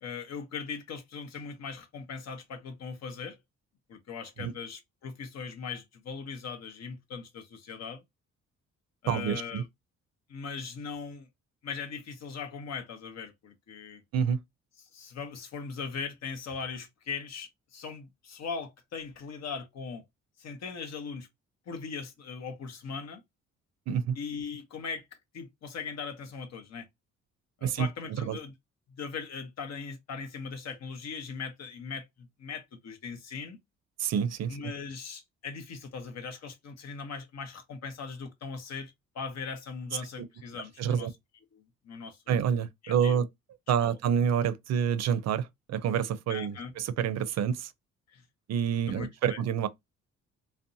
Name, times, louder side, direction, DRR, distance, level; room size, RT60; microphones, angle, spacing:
voice 1, 0.0-3.4 3.9-8.0 9.0-9.7 10.3-11.3 11.6-14.0 14.9-20.0 20.4-21.3 21.7-23.2 24.2-26.9 27.6-28.5 28.9-33.6 34.5-41.1 41.5-42.5 42.8-43.2 43.8-44.0 46.3-46.7 48.1-48.2 48.9-49.4, left 5 dB, 60° left, 0.8 m, -39 dB
voice 2, 9.1-9.6 14.1-14.4 23.9-24.2 27.6-27.9 28.2-28.4 34.0-34.7 40.8-41.1 42.3-43.3 43.7-47.7 48.5-49.7, right 8 dB, 60° right, 0.5 m, -28 dB
2.6 x 2.1 x 2.5 m
cardioid pair, 90°, 30 cm